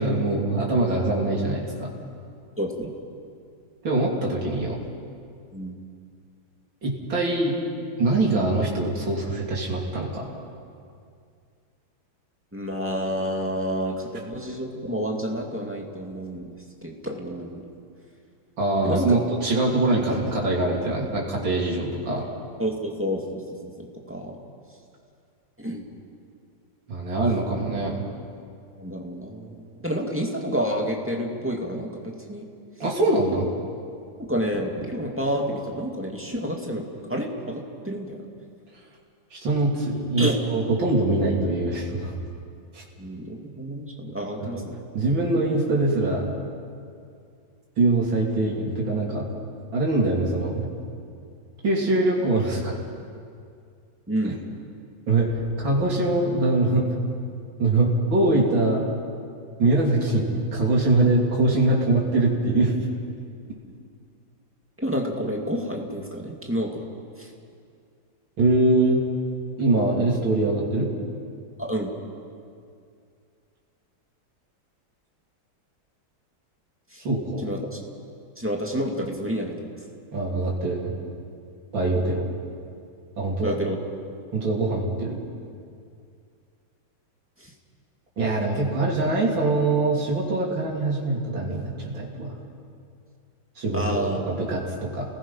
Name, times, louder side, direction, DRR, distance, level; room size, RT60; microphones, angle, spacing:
voice 1, 0.0-1.9 3.8-4.8 6.8-7.6 8.0-10.2 18.6-22.3 26.9-28.0 32.8-33.5 39.3-42.1 42.7-42.8 44.4-44.6 44.9-46.3 47.8-49.2 49.7-50.7 51.6-52.8 54.2-54.3 55.1-56.9 57.6-58.8 59.6-62.8 68.4-69.0 69.6-70.9 77.0-77.5 80.1-80.9 81.7-82.3 83.2-83.5 84.3-85.2 88.2-92.3 93.6-95.1, right 2 dB, 80° right, -3 dB, 4.0 m, -23 dB
voice 2, 2.6-2.9 5.5-5.8 12.5-16.6 16.8-17.6 18.8-19.2 22.6-24.4 25.6-25.9 28.8-32.4 34.2-38.3 40.2-40.4 43.0-44.7 54.1-54.4 64.8-66.8 67.2-67.3 71.6-71.9 76.9-77.0 77.4-77.8 78.4-79.5 83.4-83.8 87.4-87.5 93.7-94.3, equal, 5° right, -1 dB, 2.3 m, -29 dB
30.0 x 20.0 x 5.7 m, 2.3 s
omnidirectional pair, 2.1 m